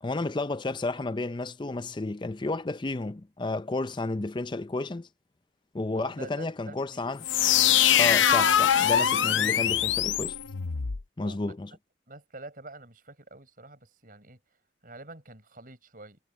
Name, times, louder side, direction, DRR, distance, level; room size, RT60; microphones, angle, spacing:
voice 1, 0.0-5.1 5.7-7.2 8.0-10.4 11.2-11.7, left 2 dB, 25° left, 0.5 m, -31 dB
voice 2, 5.9-7.1 11.2-11.6 12.1-16.2, right 2 dB, 50° right, 6.9 m, -47 dB
sound 1, 7.2-11.0, left 9 dB, 85° left, 0.7 m, -23 dB
head